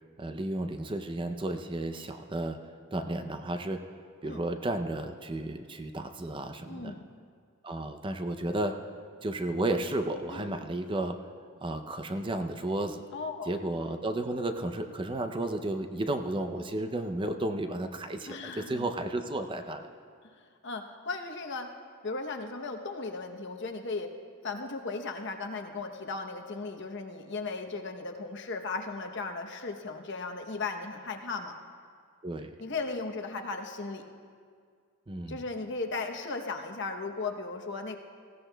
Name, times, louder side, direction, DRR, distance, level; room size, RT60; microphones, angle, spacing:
voice 1, 0.2-2.6 2.9-3.9 4.2-6.9 7.6-8.8 9.2-11.2 11.6-13.0 13.5-19.8 32.2-32.5 35.1-35.4, right 1 dB, 25° right, 7 dB, 0.5 m, -33 dB
voice 2, 6.6-7.1 10.3-10.7 13.1-13.6 18.3-18.9 20.6-21.7 22.0-24.1 24.4-31.6 32.6-34.0 35.3-38.0, left 3 dB, 55° left, 4 dB, 0.8 m, -36 dB
19.0 x 15.5 x 2.2 m, 2.1 s
head